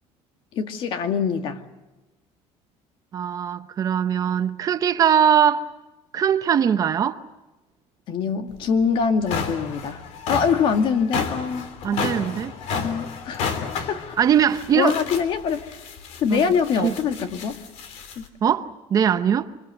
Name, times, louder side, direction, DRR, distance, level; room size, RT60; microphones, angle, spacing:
voice 1, 0.5-1.6 8.1-10.0 10.3-11.7 12.7-14.2 14.7-15.7 16.2-17.6 18.2-18.3, left 6 dB, 45° left, 2.0 m, -24 dB
voice 2, 3.1-5.7 6.1-7.2 11.8-12.5 14.2-15.0 16.3-16.4 16.8-16.9 18.4-19.5, right 8 dB, 30° right, 0.8 m, -21 dB
sound 1, 8.5-8.6 9.0-18.3, left 5 dB, 65° left, 3.1 m, -32 dB
25.5 x 25.5 x 7.9 m
cardioid pair, 175°, 12 cm